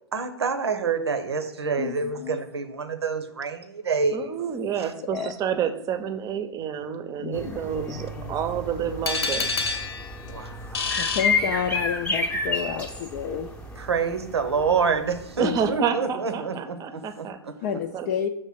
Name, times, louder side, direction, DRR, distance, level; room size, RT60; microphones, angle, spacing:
voice 1, 0.1-4.2 10.2-10.8 13.8-17.5, right 5 dB, 80° right, 8 dB, 0.8 m, -27 dB
voice 2, 1.8-2.4 5.1-5.3 7.2-8.3 10.3-10.5 11.0-13.5 15.4-15.6 17.6-18.3, left 8 dB, 45° left, 5 dB, 0.5 m, -30 dB
voice 3, 4.1-9.5 15.4-17.4 17.9-18.1, right 8 dB, 25° right, 10 dB, 0.7 m, -29 dB
sound 1, 7.3-15.7, left 3 dB, 10° left, 0.8 m, -31 dB
sound 2, 9.1-12.1, left 4 dB, 80° left, 0.9 m, -29 dB
6.3 x 3.3 x 5.7 m, 0.83 s
hypercardioid pair, 105°, 13 cm